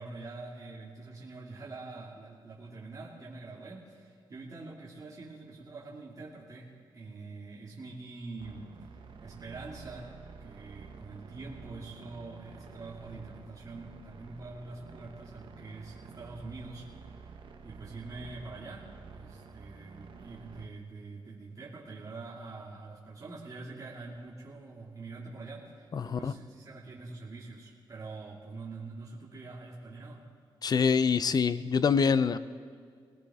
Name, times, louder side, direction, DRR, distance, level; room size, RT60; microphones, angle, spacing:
voice 1, 0.0-8.7 9.2-10.1 10.4-17.3 17.6-30.2, right 3 dB, 40° right, -5 dB, 2.3 m, -45 dB
sound 1, 8.4-20.7, right 4 dB, 65° right, 1.2 m, -50 dB
voice 2, 25.9-26.3 30.6-32.4, left 6 dB, 45° left, 14 dB, 0.5 m, -25 dB
21.5 x 18.5 x 3.6 m, 2.1 s
cardioid pair, 105°, 9 cm